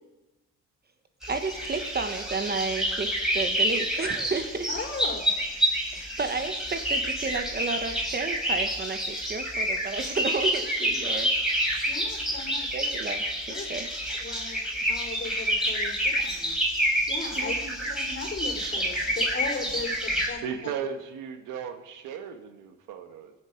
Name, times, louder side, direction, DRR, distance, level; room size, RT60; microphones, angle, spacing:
sound 1, 1.2-20.3, equal, ahead, 4.9 m, -28 dB
voice 1, 1.3-4.7 5.9-11.3 12.7-13.9 17.3-17.8, right 4 dB, 30° right, 7 dB, 1.3 m, -32 dB
voice 2, 4.7-5.3 11.9-12.9 13.5-13.7 14.1-16.5 17.1-20.4, left 3 dB, 40° left, 3 dB, 3.6 m, -37 dB
voice 3, 20.4-23.3, right 7 dB, 90° right, 7 dB, 1.5 m, -36 dB
22.5 x 7.5 x 5.2 m, 1.1 s
cardioid pair, 90°, 30 cm